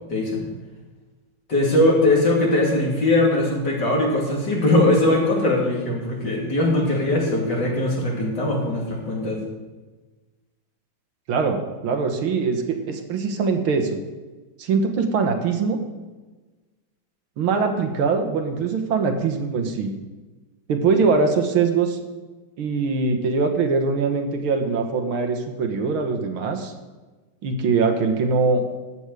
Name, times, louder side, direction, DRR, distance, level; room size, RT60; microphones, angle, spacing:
voice 1, 0.1-0.4 1.5-9.4, left 1 dB, 55° left, -2 dB, 3.3 m, -20 dB
voice 2, 11.3-14.0 14.6-15.8 17.4-19.9 20.7-22.0 22.6-26.7 27.4-28.6, right 4 dB, 80° right, 4 dB, 2.1 m, -22 dB
13.5 x 9.0 x 4.9 m, 1.2 s
omnidirectional pair, 2.3 m